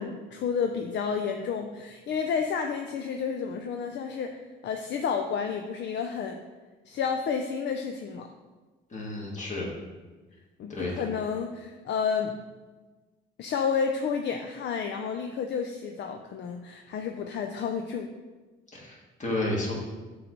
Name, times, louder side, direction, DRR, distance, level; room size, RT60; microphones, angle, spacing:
voice 1, 0.0-4.3 4.6-6.4 6.9-8.3 10.6-12.3 13.4-18.1, left 6 dB, 65° left, 4 dB, 0.5 m, -30 dB
voice 2, 8.9-9.7 10.7-11.1 18.7-19.7, left 2 dB, 40° left, -3 dB, 1.9 m, -31 dB
7.6 x 3.2 x 3.9 m, 1.3 s
cardioid pair, 90°, 20 cm